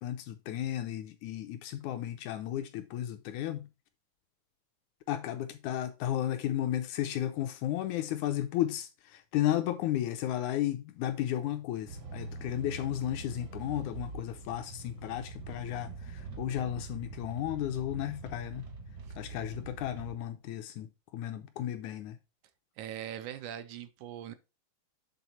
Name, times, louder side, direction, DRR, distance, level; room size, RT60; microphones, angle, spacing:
voice 1, 0.0-3.7 5.1-18.6 19.2-22.2, left 12 dB, 80° left, 1.7 m, -34 dB
sound 1, 11.9-20.1, right 3 dB, 55° right, 1.0 m, -44 dB
voice 2, 22.8-24.3, right 10 dB, 80° right, 1.9 m, -41 dB
8.1 x 3.9 x 4.2 m
omnidirectional pair, 3.8 m